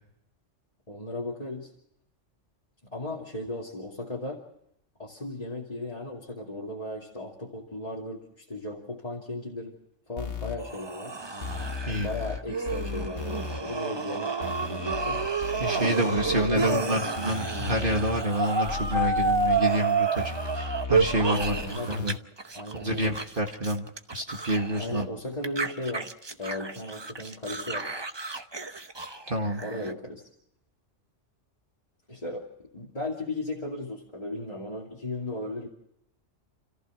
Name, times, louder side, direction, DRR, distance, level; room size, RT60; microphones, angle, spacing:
voice 1, 0.9-1.7 2.9-4.4 5.0-9.7 10.1-11.2 11.8-15.2 16.3-17.0 21.3-21.9 22.5-23.2 24.8-26.1 26.4-27.9 29.6-30.2 32.1-35.7, left 2 dB, 30° left, -4 dB, 2.8 m, -36 dB
sound 1, 10.2-10.6 11.4-12.4 12.7-13.6 14.4-16.6 17.2-18.2 18.7-19.6 20.2-22.2, left 4 dB, 65° left, 1.9 m, -36 dB
sound 2, 10.6-22.1 22.4-25.0 25.4-29.9, right 4 dB, 25° right, 0.8 m, -30 dB
voice 2, 15.6-21.6 21.9-22.1 22.8-23.9 24.1-25.1 29.3-29.6, right 1 dB, 45° right, 3 dB, 2.1 m, -28 dB
29.0 x 14.5 x 6.3 m, 0.80 s
omnidirectional pair, 1.3 m